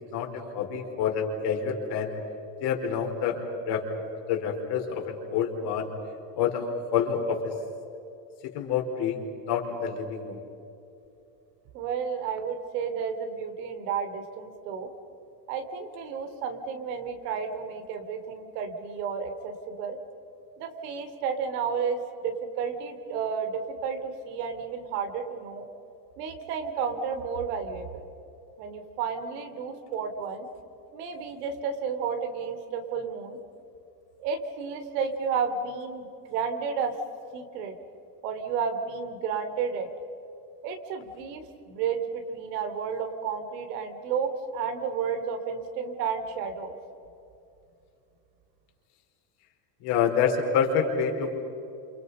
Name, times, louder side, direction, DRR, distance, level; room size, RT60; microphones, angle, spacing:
voice 1, 0.1-2.1 2.6-5.9 6.3-6.6 6.9-7.5 8.5-9.2 9.4-10.4 49.8-51.4, left 7 dB, 55° left, 2 dB, 4.9 m, -27 dB
voice 2, 11.7-14.9 15.5-20.0 20.6-25.7 26.2-28.1 28.6-30.5 30.9-33.4 34.2-36.9 37.3-37.7 38.2-39.9 40.6-46.7, right 6 dB, 85° right, 7 dB, 3.5 m, -32 dB
29.5 x 28.0 x 5.6 m, 2.8 s
cardioid pair, 155°, 47 cm